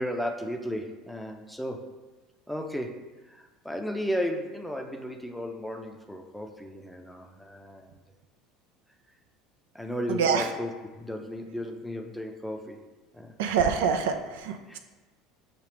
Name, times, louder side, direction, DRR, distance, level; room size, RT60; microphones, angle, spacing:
voice 1, 0.0-1.9 2.5-3.0 3.3-7.9 9.7-12.8 13.1-13.3 14.7-14.8, equal, ahead, 3 dB, 0.5 m, -34 dB
voice 2, 10.1-10.5 13.4-14.8, right 6 dB, 75° right, 6 dB, 0.3 m, -26 dB
6.2 x 2.4 x 3.4 m, 1.2 s
hypercardioid pair, 75°, 0 cm